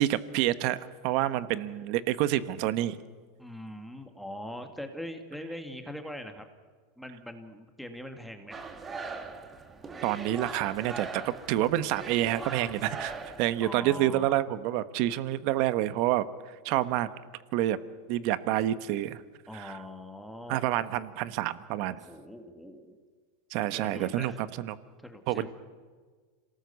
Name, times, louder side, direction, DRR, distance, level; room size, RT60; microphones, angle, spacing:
voice 1, 0.0-3.0 10.0-13.1 13.4-16.3 16.6-17.1 17.5-17.8 18.1-19.2 19.5-19.8 20.5-22.0 23.5-24.8 25.3-25.5, right 14 dB, 55° right, 14 dB, 1.2 m, -28 dB
voice 2, 3.4-6.5 7.0-8.7 13.6-14.3 19.5-20.7 21.9-23.0 23.7-24.4 25.0-25.5, left 1 dB, ahead, 5 dB, 2.1 m, -42 dB
sound 1, 8.5-13.7, right 4 dB, 20° right, 2.1 m, -40 dB
26.5 x 18.5 x 7.1 m, 1.5 s
supercardioid pair, 120°, 0 cm